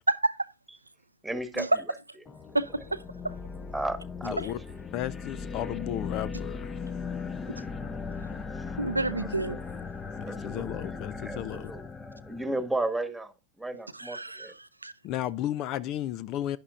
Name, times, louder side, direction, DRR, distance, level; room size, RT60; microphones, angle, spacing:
voice 1, 0.1-0.5 1.6-1.7 2.5-3.0 7.5-7.6 8.8-9.6 14.0-14.5 14.8-14.9, right 2 dB, 85° right, 0.5 m, -29 dB
voice 2, 1.2-1.7 3.7-4.6 8.5-8.6 9.1-9.6 10.2-11.4 11.7-14.5, right 2 dB, 5° right, 1.7 m, -35 dB
sound 1, 2.2-12.8, left 5 dB, 20° left, 1.0 m, -38 dB
voice 3, 4.2-4.6 4.9-6.9 10.2-11.7 15.0-16.6, left 12 dB, 40° left, 0.5 m, -34 dB
11.0 x 11.0 x 2.5 m
figure-of-eight pair, 90°, 0 cm